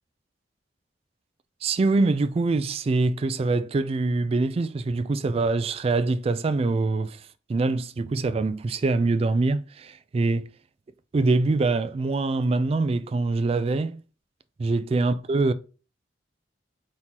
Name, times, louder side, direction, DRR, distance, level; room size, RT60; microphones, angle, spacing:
voice 1, 1.6-7.2 7.5-10.5 11.1-14.0 14.6-15.5, right 3 dB, 35° right, 0.3 m, -24 dB
4.3 x 3.7 x 2.9 m
head